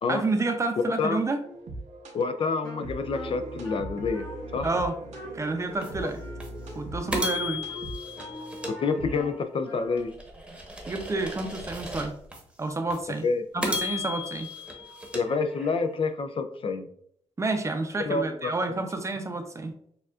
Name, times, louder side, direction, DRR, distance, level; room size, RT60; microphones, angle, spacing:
voice 1, 0.1-1.4 4.6-5.0 5.3-6.2 6.8-7.6 10.9-12.2 12.6-13.2 13.5-14.5 17.4-19.7, right 3 dB, 25° right, 6 dB, 0.6 m, -29 dB
Crossed Path a lo-fi instrumental hip hop track, 1.4-9.2, right 2 dB, 80° right, 0.9 m, -40 dB
voice 2, 2.1-4.3 4.5-4.7 8.7-10.1 13.2-13.4 15.1-16.9 18.1-18.8, left 4 dB, 50° left, 9 dB, 0.4 m, -28 dB
Wind instrument woodwind instrument, 2.6-10.2, left 3 dB, 30° left, 1.3 m, -44 dB
sound 1, 5.8-5.9 6.4-6.5 7.1-9.5 10.0-12.4 12.9-13.0 13.6-16.0, left 2 dB, 10° right, 0.9 m, -35 dB
6.6 x 2.4 x 2.4 m, 0.66 s
cardioid pair, 110°, 12 cm